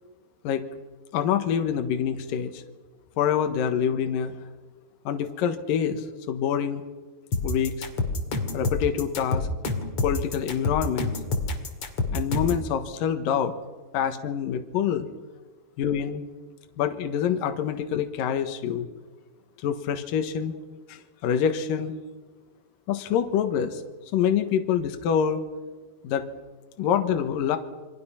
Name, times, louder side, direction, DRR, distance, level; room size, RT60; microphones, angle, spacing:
voice 1, 1.1-2.6 3.2-4.4 5.1-6.8 7.4-7.9 8.5-9.5 10.0-11.1 12.1-13.5 13.9-15.1 15.8-16.2 16.8-18.9 19.6-20.5 20.9-21.9 22.9-23.8 24.1-25.4 26.0-26.3 26.8-27.6, left 8 dB, 70° left, 7 dB, 2.9 m, -26 dB
sound 1, 7.3-12.6, left 3 dB, 40° left, 3.0 m, -27 dB
29.0 x 23.5 x 5.8 m, 1.3 s
omnidirectional pair, 4.3 m